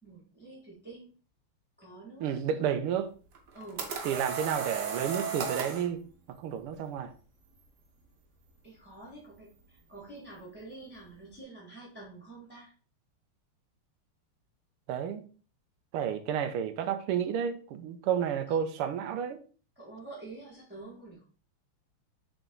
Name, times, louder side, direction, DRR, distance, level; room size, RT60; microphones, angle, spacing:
voice 1, 0.0-1.1 1.8-2.3 3.5-3.9 8.6-12.7 18.5-18.6 19.7-21.2, right 2 dB, 5° right, 1.5 m, -47 dB
voice 2, 2.2-3.1 4.0-6.0 6.3-7.1 14.9-15.2 15.9-19.4, right 8 dB, 90° right, 1.6 m, -31 dB
sound 1, 3.3-5.9, right 5 dB, 55° right, 1.4 m, -35 dB
6.9 x 3.8 x 3.8 m
omnidirectional pair, 2.4 m